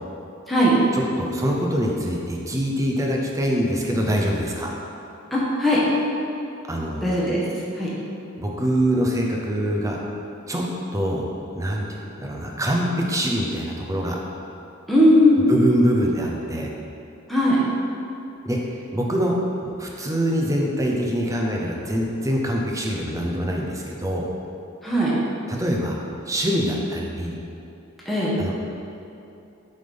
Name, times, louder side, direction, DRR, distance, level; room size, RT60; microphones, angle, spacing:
voice 1, 0.9-4.7 6.7-7.0 8.4-10.0 10.5-10.7 10.9-11.3 11.5-14.2 15.4-16.7 18.4-18.6 18.9-24.3 25.5-27.4 28.4-28.7, equal, 15° right, -1 dB, 0.7 m, -24 dB
voice 2, 5.3-5.8 7.0-7.4 7.7-7.9 14.9-15.5 17.3-17.6 24.8-25.2 28.0-28.4, left 1 dB, ahead, -8 dB, 1.2 m, -18 dB
7.7 x 3.6 x 5.2 m, 2.7 s
head